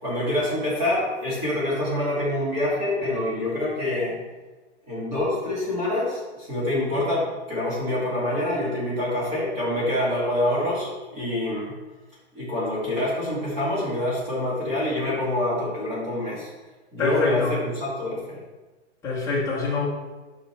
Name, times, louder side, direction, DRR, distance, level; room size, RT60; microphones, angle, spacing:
voice 1, 0.0-4.2 4.9-11.7 12.3-16.5 16.9-18.4, left 1 dB, 20° right, 2.2 m, -26 dB
voice 2, 17.0-17.5 19.0-19.9, left 4 dB, 10° left, 1.2 m, -25 dB
8.8 x 5.3 x 3.4 m
hypercardioid pair, 165°, 35 cm